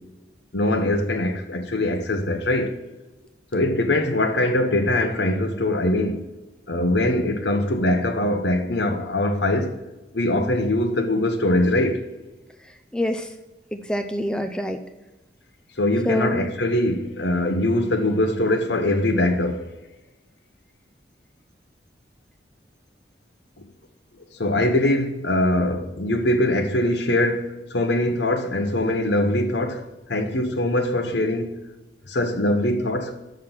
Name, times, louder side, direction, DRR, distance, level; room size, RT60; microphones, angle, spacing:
voice 1, 0.5-2.8 3.5-6.2 6.7-9.8 10.1-12.0 15.8-19.7 23.6-23.7 24.3-31.5 32.1-33.2, left 1 dB, 70° left, 1.1 m, -22 dB
voice 2, 12.6-13.3 13.7-14.8 16.0-16.4, equal, 5° left, 0.4 m, -26 dB
6.5 x 5.9 x 7.1 m
head